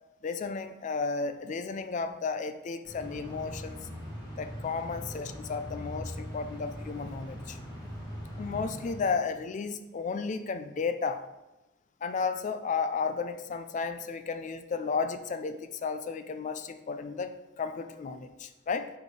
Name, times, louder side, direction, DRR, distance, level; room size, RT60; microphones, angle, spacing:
voice 1, 0.2-3.8 4.4-7.6 8.4-11.2 12.0-18.9, left 5 dB, 35° left, 9 dB, 0.3 m, -33 dB
sound 1, 2.8-9.7, equal, 20° left, 1.7 m, -41 dB
5.0 x 4.2 x 4.8 m, 1.0 s
head